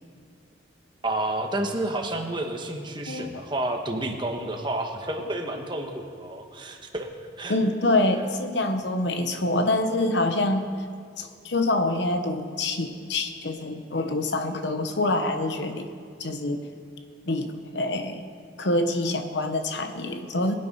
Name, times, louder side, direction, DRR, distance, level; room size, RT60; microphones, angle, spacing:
voice 1, 1.0-7.1 7.4-7.6, right 1 dB, 25° right, 3 dB, 1.3 m, -30 dB
voice 2, 3.1-3.4 7.5-10.6 11.2-15.9 16.2-16.6 17.3-18.3 18.6-20.6, left 2 dB, 65° left, 7 dB, 1.0 m, -26 dB
23.0 x 9.0 x 5.5 m, 2.2 s
head